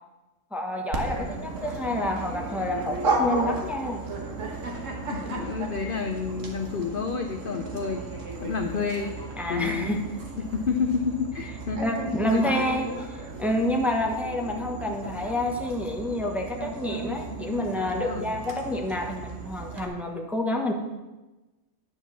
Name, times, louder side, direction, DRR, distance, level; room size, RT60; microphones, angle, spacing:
voice 1, 0.5-4.0 9.4-10.0 11.8-12.9 13.4-20.7, left 1 dB, ahead, 2 dB, 1.0 m, -28 dB
Dog, 0.9-19.8, right 3 dB, 60° right, 1.6 m, -34 dB
voice 2, 5.0-9.1 9.5-10.0 10.4-11.8 12.2-12.7 17.9-18.3, left 5 dB, 50° left, 5 dB, 0.7 m, -30 dB
10.0 x 5.5 x 7.2 m, 1.1 s
omnidirectional pair, 1.6 m